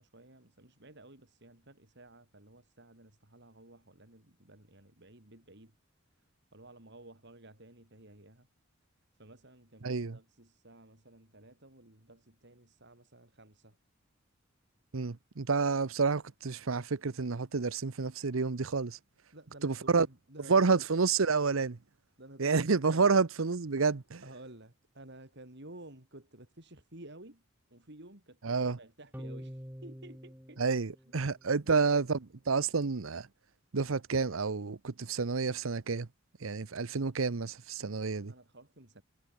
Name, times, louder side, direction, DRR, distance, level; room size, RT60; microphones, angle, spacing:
voice 1, 0.0-5.7 6.5-8.5 9.2-13.8 19.3-21.1 22.2-23.2 24.2-27.4 27.7-30.6 31.6-32.0 37.8-39.0, right 1 dB, 55° right, 4.6 m, -53 dB
voice 2, 9.8-10.2 14.9-19.0 19.6-20.1 20.5-21.8 22.4-24.2 28.4-28.8 30.6-32.2 32.5-33.3 33.7-36.1 36.4-38.3, right 4 dB, 80° right, 0.8 m, -29 dB
sound 1, 29.1-31.7, equal, 10° right, 6.2 m, -46 dB
head